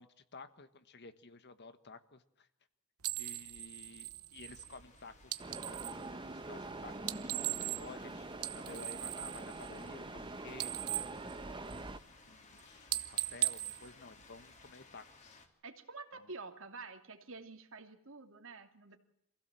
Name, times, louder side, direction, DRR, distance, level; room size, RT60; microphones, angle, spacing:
voice 1, 0.0-2.5 3.2-5.3 5.7-8.2 8.5-11.6 12.3-15.4 16.1-16.3, left 3 dB, 50° left, 11 dB, 1.4 m, -53 dB
sound 1, 3.0-6.0 6.9-8.1 8.3-10.2 10.5-12.0 12.4-12.6 12.9-14.7, right 17 dB, 90° right, 1.0 m, -39 dB
sound 2, 4.4-15.5, left 3 dB, 35° left, 3.0 m, -61 dB
sound 3, 5.4-12.0, right 2 dB, 25° right, 1.0 m, -45 dB
voice 2, 15.6-19.0, right 3 dB, 65° right, 6 dB, 2.6 m, -49 dB
26.5 x 16.5 x 7.6 m, 0.78 s
head